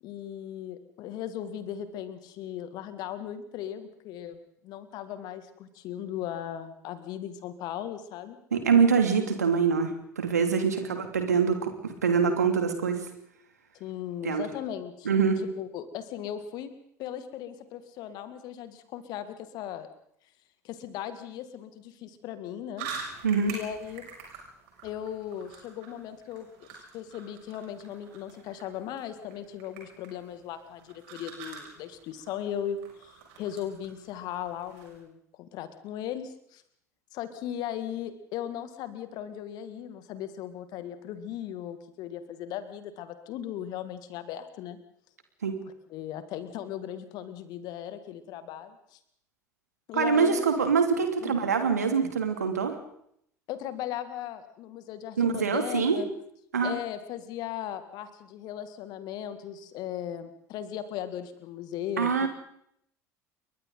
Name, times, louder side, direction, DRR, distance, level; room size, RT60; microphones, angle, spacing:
voice 1, 0.0-8.4 10.6-11.0 13.7-15.1 15.4-16.7 17.0-19.9 20.6-23.1 23.5-24.0 24.8-26.7 26.9-36.6 37.1-44.8 45.9-49.0 49.9-50.5 51.2-51.5 52.0-52.1 53.5-56.1 56.6-62.3, left 10 dB, 50° left, 10 dB, 2.3 m, -37 dB
voice 2, 8.5-13.0 14.2-14.5 15.0-15.4 23.2-23.5 45.4-45.6 49.9-52.7 55.2-56.0 56.5-56.7 62.0-62.3, right 6 dB, 75° right, 6 dB, 2.7 m, -24 dB
sound 1, 22.8-35.0, right 5 dB, 60° right, 6.8 m, -46 dB
28.5 x 23.0 x 4.0 m, 0.72 s
figure-of-eight pair, 65°, 9 cm